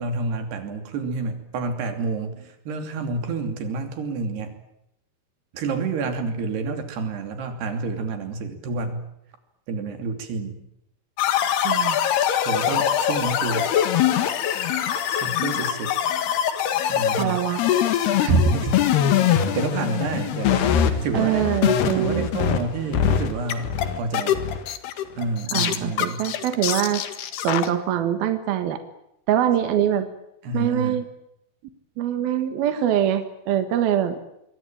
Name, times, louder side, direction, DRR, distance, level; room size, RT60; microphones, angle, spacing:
voice 1, 0.0-4.6 5.5-9.1 9.7-10.6 12.4-13.7 15.1-15.9 16.9-17.4 18.0-18.8 19.3-21.5 22.0-24.4 25.2-26.3 30.4-31.0, right 3 dB, 85° right, 7 dB, 5.0 m, -28 dB
sound 1, 11.2-22.6 22.9-27.7, left 10 dB, 80° left, 3.8 m, -23 dB
voice 2, 11.6-12.0 17.0-17.6 21.1-22.3 25.5-27.0 27.4-28.8 29.3-30.1 30.5-31.0 32.0-34.2, right 10 dB, 70° right, 9 dB, 3.4 m, -23 dB
26.0 x 23.0 x 8.9 m, 0.81 s
omnidirectional pair, 4.6 m